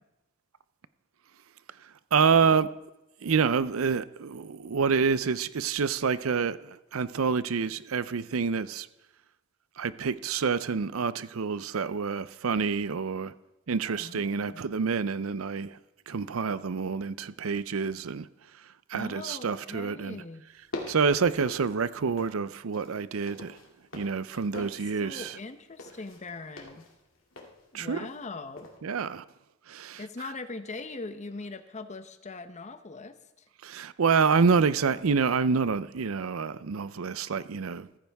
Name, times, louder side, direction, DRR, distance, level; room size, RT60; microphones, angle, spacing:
voice 1, 2.1-2.7 3.2-8.9 9.8-13.3 13.7-15.8 16.1-18.3 18.9-20.2 20.9-23.6 23.9-25.4 27.7-28.1 28.8-29.2 29.7-30.0 33.6-38.0, right 5 dB, 90° right, 0.6 m, -27 dB
voice 2, 14.0-14.6 18.9-20.4 24.5-24.7 25.0-26.9 27.7-28.7 30.0-33.4, left 3 dB, 35° left, 0.8 m, -41 dB
sound 1, 20.5-22.4 22.7-28.3 28.6-28.8, left 2 dB, 75° left, 2.5 m, -44 dB
15.0 x 14.5 x 3.5 m
head